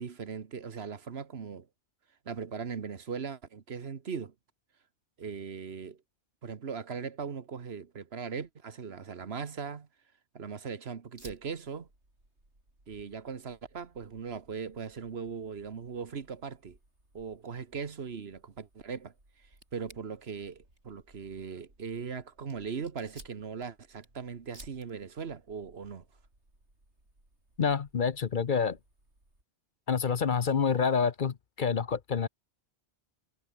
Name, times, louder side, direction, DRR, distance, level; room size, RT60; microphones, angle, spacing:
voice 1, 0.0-1.7 2.2-4.3 5.2-6.0 6.4-9.9 10.3-11.9 12.9-16.8 17.1-19.1 19.7-26.0, right 6 dB, 70° right, 1.5 m, -39 dB
Fire, 11.2-29.4, right 1 dB, 85° right, 7.4 m, -59 dB
voice 2, 27.6-28.8 29.9-32.3, left 6 dB, 50° left, 0.9 m, -27 dB
omnidirectional pair, 1.1 m